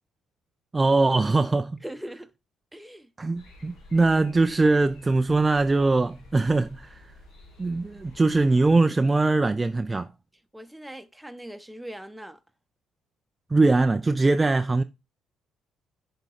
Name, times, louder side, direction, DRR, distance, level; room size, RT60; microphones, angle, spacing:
voice 1, 0.7-1.8 3.2-7.1 7.6-10.1 13.5-14.8, right 3 dB, 25° right, 0.4 m, -22 dB
voice 2, 1.8-2.3 2.7-3.1 10.5-12.4, right 1 dB, 5° right, 0.9 m, -40 dB
sound 1, 3.3-8.7, left 2 dB, 75° left, 2.3 m, -50 dB
6.8 x 3.8 x 4.8 m
hypercardioid pair, 55°, 0 cm